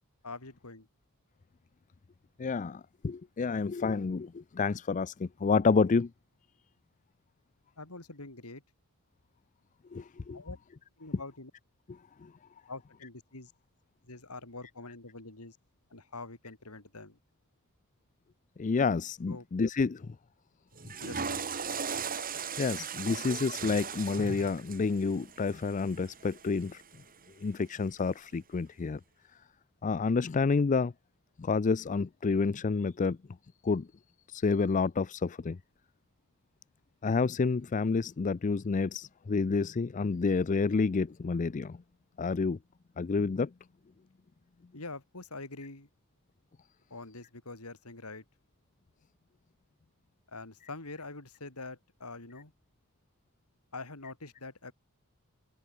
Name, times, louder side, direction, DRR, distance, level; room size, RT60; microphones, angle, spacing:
voice 1, 0.2-0.9 7.8-8.6 10.3-10.6 11.0-11.5 12.7-13.5 14.0-15.6 15.9-17.2 19.3-19.5 21.0-21.4 44.7-45.9 46.9-48.2 50.3-52.5 53.7-54.7, left 3 dB, 80° left, 3.8 m, -44 dB
voice 2, 2.4-6.1 9.9-10.4 12.2-12.3 18.6-20.1 22.6-26.8 27.4-29.0 29.8-30.9 31.4-33.2 33.6-33.9 34.3-35.6 37.0-41.8 42.2-42.6 43.0-43.5, left 4 dB, 35° left, 0.4 m, -29 dB
Water / Toilet flush, 20.7-27.0, right 6 dB, 40° right, 5.6 m, -38 dB
head